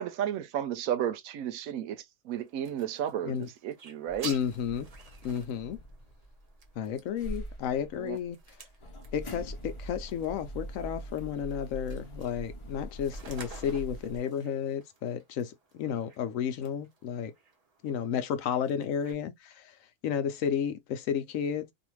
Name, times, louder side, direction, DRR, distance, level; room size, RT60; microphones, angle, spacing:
voice 1, 0.0-4.3 8.0-8.2, right 10 dB, 75° right, 1.0 m, -33 dB
sound 1, 2.3-19.1, right 4 dB, 40° right, 0.6 m, -51 dB
sound 2, 4.1-6.9 7.2-14.2, equal, 30° left, 0.6 m, -43 dB
voice 2, 4.2-4.9 5.2-5.8 6.8-8.4 9.1-17.3 17.8-19.7 20.0-21.7, left 8 dB, 75° left, 1.0 m, -32 dB
2.7 x 2.5 x 2.9 m
omnidirectional pair, 1.5 m